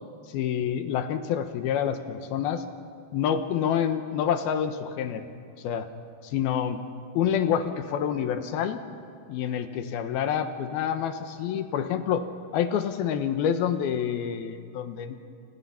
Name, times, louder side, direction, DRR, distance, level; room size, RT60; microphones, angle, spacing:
voice 1, 0.3-2.6 3.1-5.2 5.6-5.9 6.2-6.8 7.1-8.8 9.3-12.3 12.5-15.3, left 8 dB, 75° left, 9 dB, 2.8 m, -27 dB
30.0 x 28.5 x 5.8 m, 2.3 s
omnidirectional pair, 4.7 m